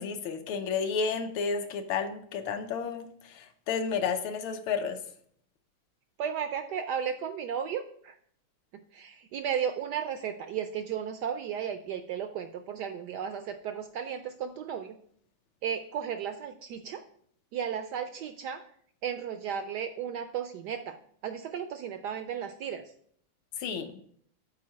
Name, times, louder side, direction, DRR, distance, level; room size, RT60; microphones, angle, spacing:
voice 1, 0.0-5.0 23.6-24.0, left 5 dB, 75° left, 7 dB, 1.5 m, -32 dB
voice 2, 6.2-8.2 8.9-15.0 15.6-17.0 17.5-18.6 19.0-22.9, right 8 dB, 80° right, 8 dB, 0.9 m, -34 dB
7.5 x 4.5 x 5.5 m, 0.63 s
omnidirectional pair, 2.3 m